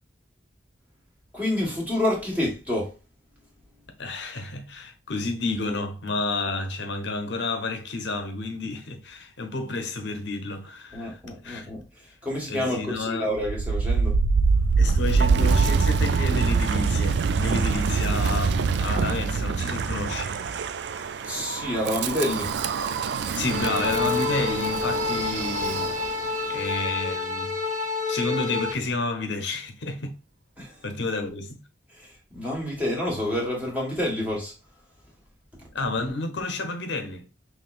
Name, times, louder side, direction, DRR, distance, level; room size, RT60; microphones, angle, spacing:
voice 1, 1.3-3.0 10.9-14.2 21.2-22.5 30.6-30.8 31.9-34.5, left 1 dB, 10° right, 1.5 m, -28 dB
voice 2, 4.0-11.7 12.5-13.3 14.8-20.4 23.3-25.9 26.5-27.5 28.1-30.1 30.8-31.5 35.7-37.3, left 3 dB, 70° left, 0.7 m, -30 dB
Wind, 13.4-26.4, right 4 dB, 65° right, 0.3 m, -24 dB
sound 1, 23.5-28.7, left 4 dB, 40° right, 0.8 m, -28 dB
5.5 x 3.1 x 2.4 m
head